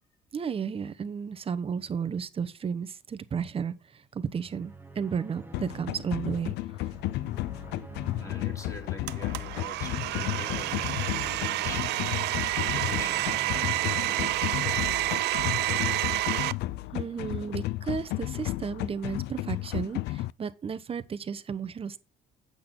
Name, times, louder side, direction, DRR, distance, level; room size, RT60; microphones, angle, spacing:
voice 1, 0.3-6.5 6.8-6.9 16.9-22.0, right 6 dB, 35° right, 1.0 m, -33 dB
sound 1, 4.2-15.6, right 3 dB, 10° right, 1.4 m, -48 dB
sound 2, 5.5-20.3, left 17 dB, 80° left, 0.4 m, -33 dB
voice 2, 8.1-13.4 13.7-16.0 17.1-17.4, left 1 dB, 20° left, 3.3 m, -46 dB
Domestic sounds home sounds, 9.1-16.5, right 17 dB, 80° right, 0.5 m, -29 dB
8.5 x 6.1 x 5.5 m
cardioid pair, 110°, 17 cm